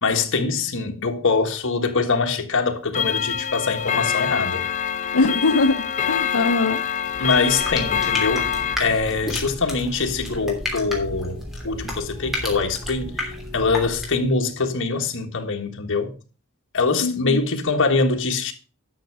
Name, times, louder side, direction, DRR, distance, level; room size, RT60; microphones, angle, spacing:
voice 1, 0.0-4.6 7.2-8.5 8.8-16.1 16.7-18.5, left 4 dB, 60° left, 1.6 m, -23 dB
Clock, 2.9-8.8, left 8 dB, 35° left, 0.8 m, -25 dB
voice 2, 5.1-6.8 17.0-17.4, left 3 dB, 80° left, 0.8 m, -22 dB
sound 1, 7.0-14.3, left 1 dB, ahead, 3.1 m, -32 dB
12.0 x 6.4 x 4.8 m
head